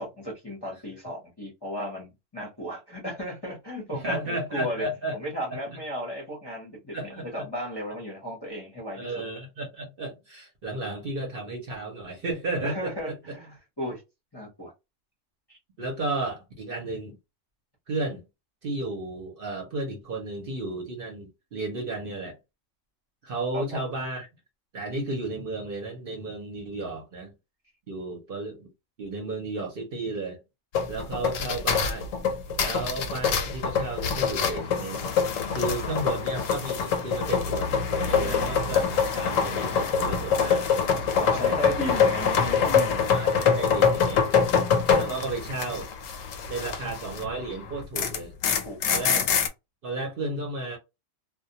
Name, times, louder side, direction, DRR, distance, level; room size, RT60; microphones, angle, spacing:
voice 1, 0.0-4.9 5.1-9.1 12.6-14.0 14.3-14.7 15.5-15.6 23.5-23.8 41.1-43.0 48.6-49.1, equal, 25° left, 0.6 m, -35 dB
voice 2, 3.9-5.1 5.7-5.8 6.9-7.5 9.0-13.3 15.8-17.2 17.9-18.2 18.6-22.4 23.2-24.3 24.7-27.3 27.9-28.7 29.0-30.4 30.9-32.1 32.6-35.1 35.5-40.9 41.2-41.6 43.1-44.3 44.9-45.9 46.5-48.3 48.9-49.3 49.8-50.8, right 2 dB, 55° right, 0.8 m, -33 dB
sound 1, 30.8-47.3 47.6-49.5, left 6 dB, 85° left, 1.0 m, -25 dB
2.2 x 2.1 x 2.7 m
omnidirectional pair, 1.3 m